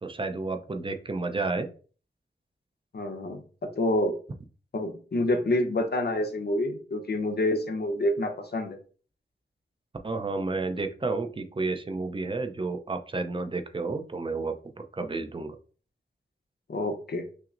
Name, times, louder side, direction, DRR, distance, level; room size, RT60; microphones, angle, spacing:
voice 1, 0.0-1.7 10.0-14.5 14.9-15.6, right 3 dB, 25° right, 7 dB, 0.5 m, -31 dB
voice 2, 2.9-3.4 3.8-4.1 4.7-8.8 16.7-17.3, left 1 dB, 60° left, 5 dB, 0.8 m, -27 dB
5.8 x 2.0 x 2.5 m, 0.40 s
wide cardioid pair, 60°, 19 cm